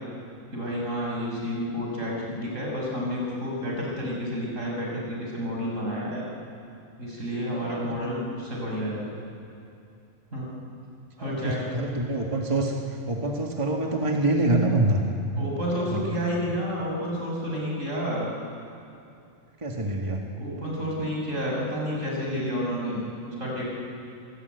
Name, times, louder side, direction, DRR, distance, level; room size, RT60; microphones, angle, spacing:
voice 1, 0.5-6.2 7.0-9.0 10.3-10.5 11.2-11.7 15.3-18.3 20.4-23.6, equal, 70° right, -3 dB, 7.1 m, -30 dB
voice 2, 7.5-7.9 11.2-15.0 15.8-16.0 19.6-20.2, right 2 dB, 25° right, 0 dB, 1.9 m, -26 dB
27.0 x 19.5 x 9.4 m, 2.6 s
omnidirectional pair, 1.4 m